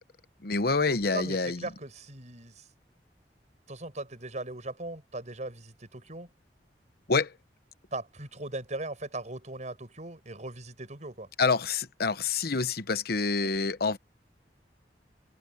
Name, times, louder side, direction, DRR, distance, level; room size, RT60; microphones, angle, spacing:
voice 1, 0.4-1.6 7.1-7.3 11.4-14.0, left 4 dB, 60° left, 1.0 m, -27 dB
voice 2, 1.1-2.7 3.7-6.3 7.9-11.3 13.4-13.5, right 2 dB, 45° right, 6.5 m, -39 dB
open air
head